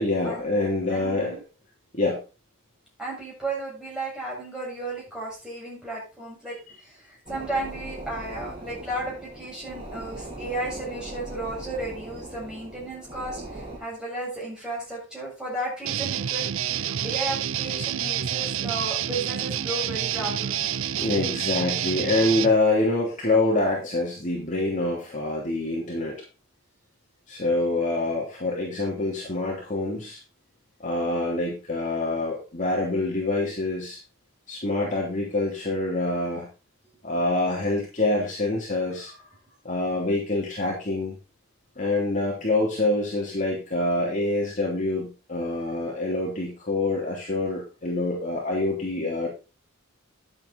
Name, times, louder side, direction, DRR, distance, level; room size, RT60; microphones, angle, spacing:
voice 1, 0.0-1.4 1.9-2.2 20.9-26.1 27.3-30.2 30.8-34.0 34.5-36.5 37.0-39.2 39.6-41.2 41.8-49.3, left 2 dB, 35° left, -3 dB, 3.2 m, -26 dB
voice 2, 0.9-1.4 3.0-20.7 37.0-37.1, right 2 dB, 5° right, -5 dB, 7.6 m, -34 dB
sound 1, 7.3-13.8, right 2 dB, 25° right, 4.5 m, -39 dB
Guitar, 15.8-22.6, right 10 dB, 70° right, 0.5 m, -28 dB
11.0 x 7.9 x 4.1 m, 0.31 s
head